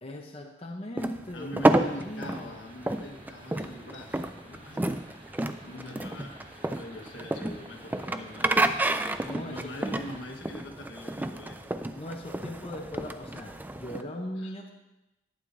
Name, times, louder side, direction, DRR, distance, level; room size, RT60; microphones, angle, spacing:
voice 1, 0.0-2.6 5.7-6.1 9.2-9.7 11.9-14.7, left 1 dB, 30° left, 1 dB, 0.7 m, -39 dB
sound 1, 1.0-14.0, right 1 dB, 10° right, 0.3 m, -29 dB
voice 2, 1.3-4.9 5.6-8.7 9.4-11.8 14.4-14.5, left 1 dB, 75° left, 2 dB, 1.4 m, -43 dB
sound 2, 1.6-10.2, right 1 dB, 35° right, 1.9 m, -51 dB
11.5 x 9.3 x 2.7 m, 0.96 s
head